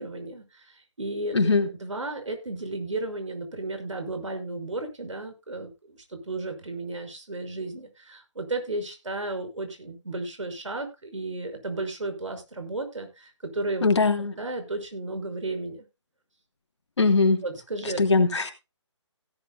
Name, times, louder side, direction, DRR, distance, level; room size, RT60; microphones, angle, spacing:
voice 1, 0.0-1.5 1.8-13.9 14.4-15.9 17.4-18.0, right 2 dB, 80° right, 5.8 m, -34 dB
voice 2, 1.3-1.7 13.8-14.3 17.0-17.4 17.8-18.5, left 3 dB, 65° left, 3.0 m, -21 dB
17.0 x 12.0 x 2.2 m
figure-of-eight pair, 150°, 16 cm